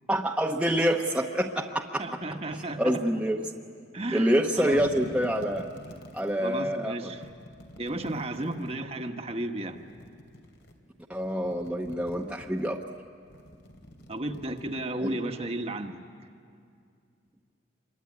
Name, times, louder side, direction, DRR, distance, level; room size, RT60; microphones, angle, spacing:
voice 1, 0.1-2.0 2.8-3.4 4.1-5.6 6.1-7.1 11.1-12.8 15.0-15.1, equal, 5° right, 0 dB, 0.9 m, -26 dB
voice 2, 2.0-3.0 3.9-4.8 6.4-7.2 7.8-9.8 14.1-16.0, right 1 dB, 35° right, 5 dB, 1.3 m, -33 dB
sound 1, 4.4-6.4 7.2-8.8 9.7-10.7 11.1-12.6 13.2-15.0, equal, 80° left, 3.1 m, -47 dB
26.5 x 23.0 x 9.6 m, 2.3 s
head